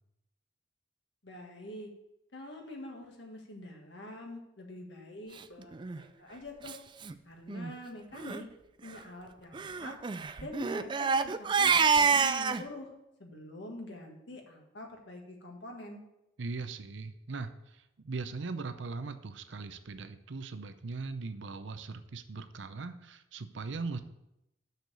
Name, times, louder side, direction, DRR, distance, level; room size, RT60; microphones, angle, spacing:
voice 1, 1.2-1.9 2.3-6.8 7.2-8.5 8.8-10.0 10.4-12.9 13.2-16.0, left 1 dB, 70° left, 1 dB, 1.7 m, -45 dB
Crying sobbing, 5.7-6.0 6.7-6.8 7.0-7.1 7.5-7.7 8.1-8.4 9.5-12.6, right 5 dB, 25° right, 0.3 m, -27 dB
voice 2, 16.4-24.0, right 4 dB, 75° right, 10 dB, 0.6 m, -40 dB
6.6 x 6.5 x 6.8 m, 0.88 s
head